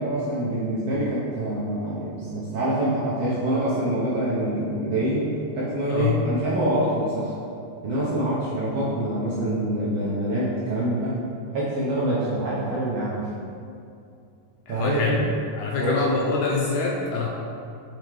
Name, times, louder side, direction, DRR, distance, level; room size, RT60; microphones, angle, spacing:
voice 1, 0.0-5.3 5.5-7.3 7.8-11.2 11.5-13.3 14.7-15.2 15.7-16.0, right 1 dB, 70° right, -8 dB, 1.7 m, -25 dB
voice 2, 5.9-6.3 14.7-15.2 15.5-17.3, left 4 dB, 80° left, -3 dB, 1.9 m, -25 dB
7.1 x 4.6 x 3.1 m, 2.5 s
omnidirectional pair, 3.6 m